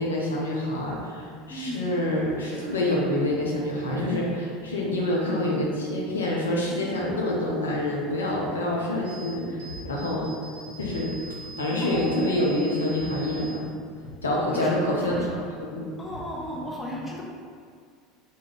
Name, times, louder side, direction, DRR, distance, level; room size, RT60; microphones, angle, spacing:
voice 1, 0.0-10.3 10.8-11.1 11.6-13.6 14.2-16.0, left 1 dB, 80° left, -3 dB, 0.4 m, -27 dB
voice 2, 1.5-1.8 11.8-12.7 14.2-14.8 15.1-15.2 16.0-17.2, equal, 20° left, -4 dB, 0.6 m, -35 dB
sound 1, 9.0-15.5, right 3 dB, 60° right, 0.5 m, -44 dB
sound 2, 9.7-10.1 10.8-11.3 11.9-12.4 13.0-13.3 14.0-14.4 15.1-15.4 16.1-16.5, left 2 dB, 65° left, 0.8 m, -43 dB
2.3 x 2.1 x 3.3 m, 2.1 s
figure-of-eight pair, 75°, 0 cm